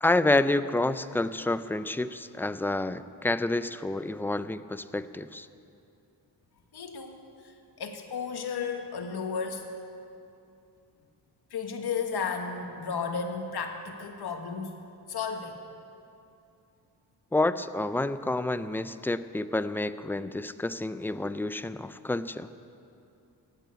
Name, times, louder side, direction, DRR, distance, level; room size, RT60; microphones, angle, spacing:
voice 1, 0.0-5.5 17.3-22.5, left 2 dB, 5° left, 12 dB, 0.4 m, -28 dB
voice 2, 6.7-9.7 11.5-14.8 15.1-15.6, left 5 dB, 70° left, 4 dB, 1.7 m, -34 dB
16.0 x 9.2 x 9.2 m, 2.6 s
wide cardioid pair, 120°, 40 cm